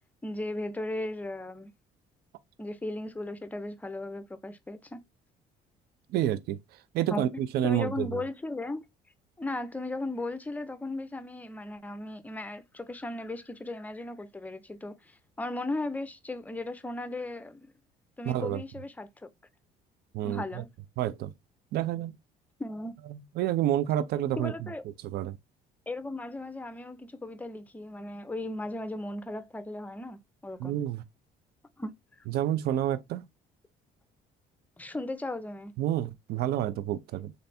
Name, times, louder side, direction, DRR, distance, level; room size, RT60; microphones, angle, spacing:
voice 1, 0.2-1.7 2.6-5.0 7.1-7.3 7.6-8.8 9.4-17.7 18.2-19.3 20.2-20.7 22.6-22.9 24.4-24.8 25.9-30.8 31.8-31.9 34.8-35.7, left 2 dB, 10° left, 0.6 m, -36 dB
voice 2, 6.1-6.6 6.9-8.1 18.3-18.6 20.1-20.4 21.0-21.3 21.7-22.1 23.4-24.5 25.1-25.4 30.6-31.0 32.3-33.2 35.8-37.3, right 12 dB, 70° right, 0.5 m, -28 dB
3.3 x 2.6 x 4.2 m
cardioid pair, 110°, 17 cm